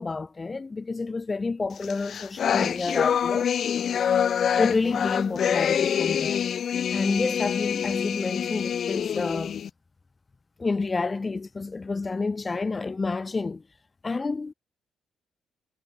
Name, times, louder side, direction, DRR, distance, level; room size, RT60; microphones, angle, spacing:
voice 1, 0.0-3.5 4.6-6.4 6.9-9.6 10.6-13.6 14.0-14.5, left 3 dB, 25° left, 3.0 m, -29 dB
sound 1, 1.8-9.7, left 8 dB, 60° left, 1.5 m, -26 dB
cardioid pair, 90°, 0 cm